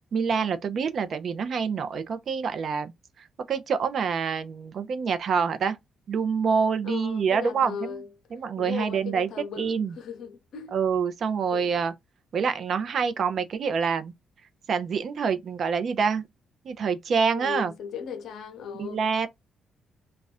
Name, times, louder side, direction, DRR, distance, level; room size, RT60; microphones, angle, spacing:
voice 1, 0.1-2.9 3.2-5.8 6.1-8.0 8.3-9.3 9.6-9.9 10.7-11.9 12.3-14.1 14.7-16.2 16.6-17.7 18.8-19.3, right 6 dB, 55° right, 0.6 m, -26 dB
voice 2, 6.8-8.1 8.6-10.8 11.5-11.8 17.2-19.1, left 7 dB, 70° left, 0.7 m, -37 dB
2.5 x 2.3 x 4.1 m
cardioid pair, 90°, 0 cm